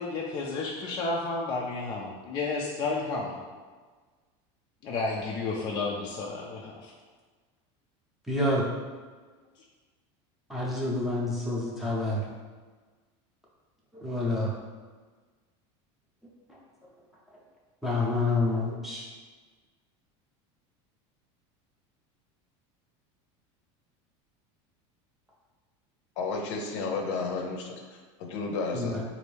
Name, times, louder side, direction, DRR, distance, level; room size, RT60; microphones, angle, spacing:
voice 1, 0.0-3.4 4.8-6.9, left 3 dB, 30° left, -3 dB, 0.4 m, -32 dB
voice 2, 8.3-8.7 10.5-12.2 13.9-14.5 17.8-19.1 28.7-29.0, left 2 dB, ahead, -6 dB, 0.7 m, -28 dB
voice 3, 26.2-27.7 28.3-29.0, left 4 dB, 85° left, 2 dB, 0.7 m, -31 dB
4.2 x 2.6 x 3.3 m, 1.4 s
supercardioid pair, 160°, 15 cm